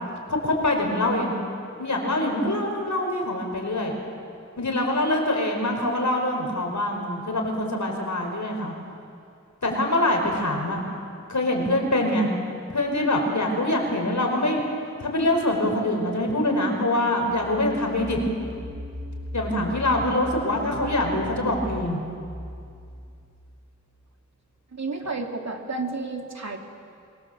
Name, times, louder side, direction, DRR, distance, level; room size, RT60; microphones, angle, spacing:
voice 1, 0.3-1.3 1.8-3.9 4.6-8.7 9.6-10.8 11.3-12.3 12.7-14.6 15.0-18.2 19.3-22.0, left 1 dB, 70° left, 2 dB, 5.1 m, -24 dB
sound 1, 17.2-23.8, equal, 10° right, 4.3 m, -38 dB
voice 2, 24.7-26.6, right 3 dB, 60° right, 2 dB, 2.9 m, -31 dB
25.5 x 23.5 x 7.8 m, 2.4 s
wide cardioid pair, 65°, 30 cm